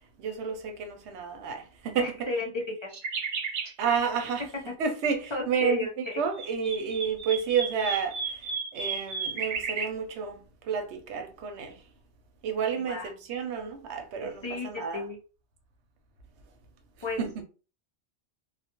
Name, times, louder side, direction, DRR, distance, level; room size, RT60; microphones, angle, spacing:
voice 1, 0.2-2.1 3.8-4.4 4.8-8.2 8.7-11.7 12.4-15.0 17.2-17.4, right 6 dB, 85° right, 0.9 m, -30 dB
voice 2, 2.0-2.9 3.6-3.7 5.3-6.2 12.7-13.1 14.2-15.2 17.0-17.2, left 3 dB, 40° left, 0.4 m, -33 dB
sound 1, 2.9-3.7 6.1-9.9, right 5 dB, 55° right, 0.6 m, -33 dB
2.3 x 2.1 x 2.8 m
omnidirectional pair, 1.1 m